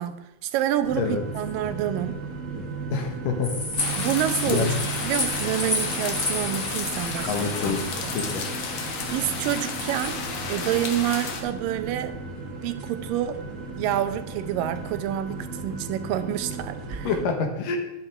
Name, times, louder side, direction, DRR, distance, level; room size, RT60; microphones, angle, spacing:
voice 1, 0.0-2.2 4.0-4.7 5.0-8.1 9.1-10.2 10.5-12.2 12.4-13.4 13.8-17.1, right 11 dB, 85° right, 11 dB, 2.4 m, -28 dB
sound 1, 0.8-17.3, right 4 dB, 35° right, 1.2 m, -35 dB
voice 2, 2.9-3.5 4.5-4.7 7.3-7.8 8.1-8.5 17.0-17.8, left 5 dB, 75° left, 4 dB, 3.1 m, -26 dB
sound 2, 3.4-10.1, left 2 dB, 20° left, 1.2 m, -32 dB
sound 3, 3.8-11.4, left 5 dB, 55° left, 2.2 m, -32 dB
11.5 x 10.5 x 5.0 m, 0.90 s
omnidirectional pair, 3.9 m